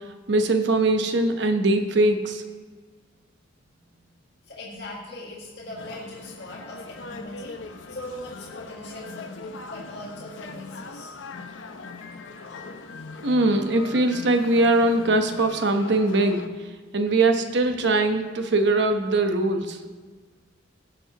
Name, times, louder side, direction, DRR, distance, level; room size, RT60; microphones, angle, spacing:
voice 1, 0.3-2.4 13.2-16.5 16.9-19.8, right 2 dB, 65° right, 6 dB, 0.9 m, -21 dB
voice 2, 4.4-11.1, left 1 dB, 60° left, -4 dB, 1.8 m, -40 dB
sound 1, 5.8-16.5, left 3 dB, 85° left, 0.7 m, -41 dB
17.5 x 7.3 x 2.9 m, 1.4 s
head